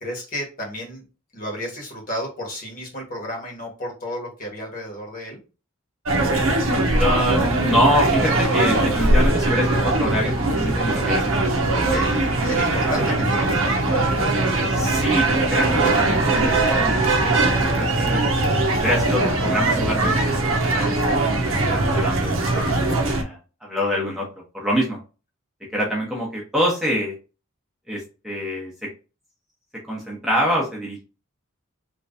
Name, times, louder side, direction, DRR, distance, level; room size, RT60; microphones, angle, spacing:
voice 1, 0.0-1.0 1.3-5.4 11.6-15.1, equal, 40° left, -1 dB, 1.4 m, -33 dB
sound 1, 6.0-23.2, right 2 dB, 70° right, 0.7 m, -20 dB
voice 2, 7.0-11.3 11.9-12.2 12.9-13.0 14.7-18.5 18.7-24.3 24.5-25.0 25.7-27.1 27.9-28.7 29.9-31.0, equal, ahead, -4 dB, 0.9 m, -26 dB
3.4 x 3.0 x 2.6 m, 0.32 s
head